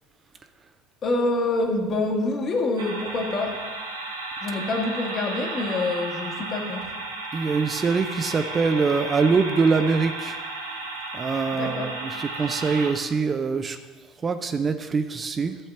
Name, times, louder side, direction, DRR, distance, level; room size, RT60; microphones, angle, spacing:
voice 1, 1.0-3.6 4.4-7.0 11.5-11.9, left 2 dB, 35° left, 2 dB, 1.6 m, -26 dB
sound 1, 2.8-12.9, right 2 dB, 75° right, 1.4 m, -34 dB
voice 2, 7.3-10.4 11.1-13.8 14.2-15.6, right 4 dB, 25° right, 8 dB, 0.5 m, -24 dB
12.0 x 4.2 x 6.9 m, 1.3 s
figure-of-eight pair, 65°, 0 cm